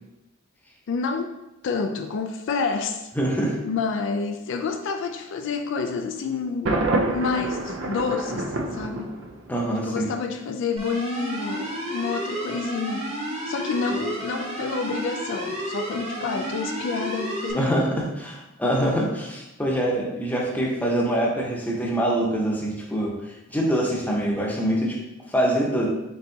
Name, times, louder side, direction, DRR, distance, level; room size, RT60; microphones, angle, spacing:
voice 1, 0.9-1.3 1.6-3.1 3.6-6.8 7.1-9.2 9.8-13.1 13.5-17.8, left 4 dB, 65° left, 6 dB, 0.3 m, -28 dB
voice 2, 3.2-3.6 9.5-10.1 13.9-14.0 17.5-23.1 23.5-25.0 25.3-25.9, right 1 dB, 10° left, -2 dB, 0.8 m, -24 dB
Thunder, 6.7-9.6, right 2 dB, 70° right, 0.6 m, -27 dB
sound 1, 10.8-17.5, equal, 30° right, 0.9 m, -31 dB
4.4 x 4.0 x 2.7 m, 0.95 s
head